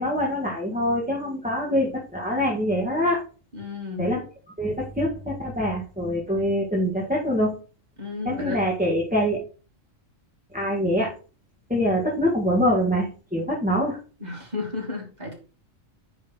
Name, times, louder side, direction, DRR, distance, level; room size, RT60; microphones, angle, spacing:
voice 1, 0.0-3.2 4.0-4.2 4.6-7.5 8.2-9.4 10.5-11.1 11.7-14.0, equal, 5° right, -4 dB, 1.7 m, -24 dB
voice 2, 3.5-4.0 8.0-8.6 14.2-15.3, left 3 dB, 35° right, -2 dB, 3.1 m, -33 dB
9.5 x 3.7 x 4.4 m, 0.36 s
omnidirectional pair, 1.3 m